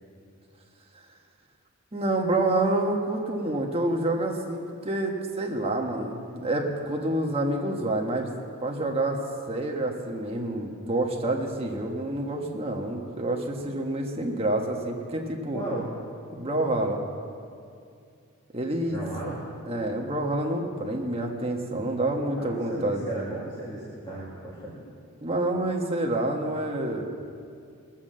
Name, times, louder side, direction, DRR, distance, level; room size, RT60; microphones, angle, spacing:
voice 1, 1.9-8.3 8.6-9.2 9.5-15.6 16.3-17.1 18.5-19.0 19.7-23.0 25.2-27.1, right 1 dB, 25° right, 1 dB, 1.4 m, -28 dB
voice 2, 15.5-15.9 18.9-19.4 22.4-24.8, right 1 dB, 20° left, -8 dB, 2.1 m, -35 dB
20.0 x 7.4 x 7.5 m, 2.4 s
head